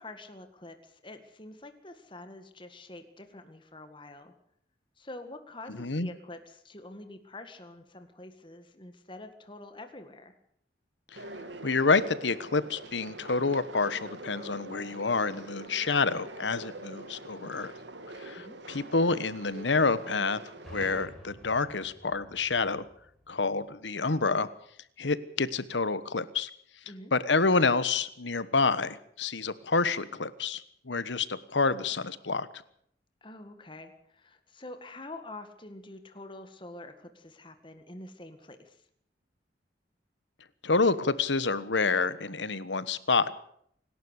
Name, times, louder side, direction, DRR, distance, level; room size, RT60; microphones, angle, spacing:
voice 1, 0.0-4.3 5.0-10.4 18.3-18.6 26.9-27.1 33.2-38.8, left 2 dB, 30° left, 8 dB, 1.9 m, -46 dB
voice 2, 5.8-6.1 11.1-11.2 11.6-17.7 18.2-20.4 20.7-22.8 23.3-24.5 25.0-26.5 27.1-32.5 40.6-43.3, left 4 dB, 90° left, 15 dB, 1.3 m, -28 dB
sound 1, 11.2-21.1, right 1 dB, 85° right, 2.6 m, -44 dB
sound 2, 20.6-24.3, equal, ahead, 5.6 m, -52 dB
26.5 x 12.0 x 8.2 m, 0.68 s
head